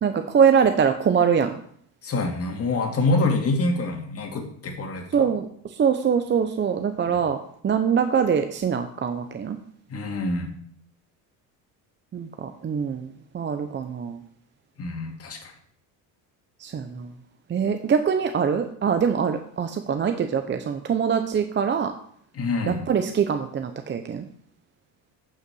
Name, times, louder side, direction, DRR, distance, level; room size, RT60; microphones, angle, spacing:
voice 1, 0.0-1.6 5.1-9.6 12.1-14.2 16.6-17.1 17.5-21.9 22.7-24.3, right 7 dB, 30° right, 7 dB, 0.7 m, -23 dB
voice 2, 2.0-5.3 7.1-7.2 9.9-10.5 14.8-15.5 22.3-22.8, left 2 dB, 35° left, 2 dB, 2.3 m, -26 dB
8.8 x 5.8 x 6.2 m, 0.64 s
supercardioid pair, 110°, 40 cm